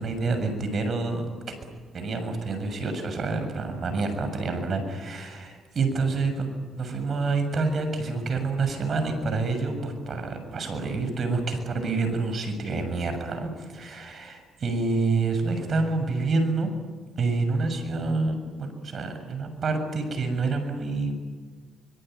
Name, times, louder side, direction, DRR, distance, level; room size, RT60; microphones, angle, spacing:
voice 1, 0.0-1.5 1.9-16.7 17.2-21.1, right 3 dB, 50° right, 7 dB, 7.0 m, -28 dB
25.0 x 23.0 x 9.4 m, 1.5 s
cardioid pair, 90°, 0 cm